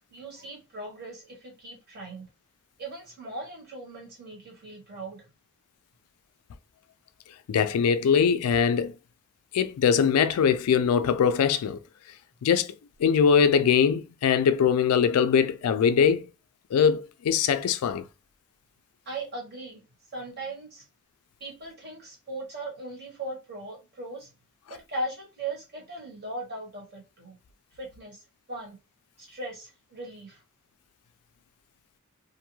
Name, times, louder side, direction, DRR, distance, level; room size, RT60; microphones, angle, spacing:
voice 1, 0.1-2.3 2.8-5.2 19.0-19.8 20.1-20.8 21.4-24.3 24.7-27.4 27.7-28.2 28.5-28.8 29.2-30.4, right 2 dB, 50° right, 1.2 m, -38 dB
voice 2, 7.5-8.9 9.5-11.8 12.4-12.7 13.0-16.3 16.7-18.0, left 7 dB, 85° left, 0.3 m, -22 dB
2.5 x 2.2 x 3.0 m
head